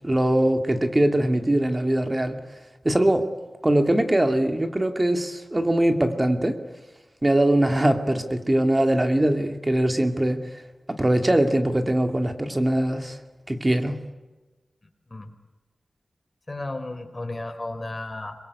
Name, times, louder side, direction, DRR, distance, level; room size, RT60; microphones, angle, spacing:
voice 1, 0.0-2.4 2.8-3.3 3.6-6.6 7.2-10.4 10.9-13.2 13.5-14.0, right 1 dB, 20° right, 6 dB, 2.5 m, -22 dB
voice 2, 16.5-18.4, left 2 dB, 30° left, 7 dB, 4.2 m, -33 dB
27.0 x 22.5 x 8.4 m, 1.2 s
wide cardioid pair, 85°, 0 cm